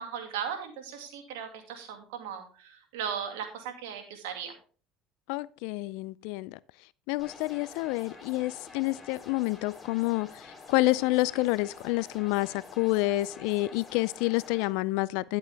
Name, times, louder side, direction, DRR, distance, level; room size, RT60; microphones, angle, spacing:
voice 1, 0.0-4.5, right 8 dB, 85° right, 2.2 m, -37 dB
voice 2, 5.3-6.6 7.1-15.4, left 19 dB, 75° left, 0.3 m, -28 dB
sound 1, 7.2-14.7, left 3 dB, 25° left, 2.9 m, -48 dB
10.5 x 7.5 x 3.4 m
supercardioid pair, 90°, 0 cm